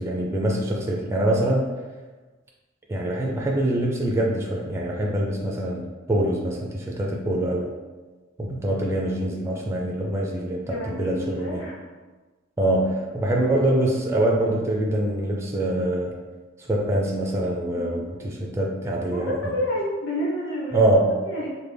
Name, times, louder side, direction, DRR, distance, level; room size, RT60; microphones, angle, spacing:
voice 1, 0.0-1.7 2.9-7.7 8.4-11.6 12.6-16.1 16.6-19.5 20.7-21.1, right 1 dB, 15° right, -2 dB, 0.3 m, -24 dB
voice 2, 10.6-11.8 17.7-18.0 19.1-20.9 21.2-21.5, equal, 65° left, -4 dB, 0.9 m, -29 dB
3.3 x 2.1 x 3.3 m, 1.3 s
head